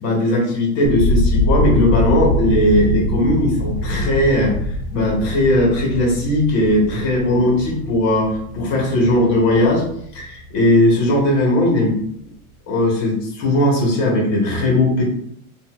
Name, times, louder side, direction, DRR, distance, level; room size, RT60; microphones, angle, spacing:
voice 1, 0.0-4.5 4.9-9.8 10.1-11.9 12.7-15.0, left 1 dB, 40° left, -2 dB, 1.4 m, -18 dB
sound 1, 0.8-10.8 11.1-11.8, equal, 55° left, 0.6 m, -23 dB
4.0 x 2.7 x 2.4 m, 0.69 s
supercardioid pair, 145°, 44 cm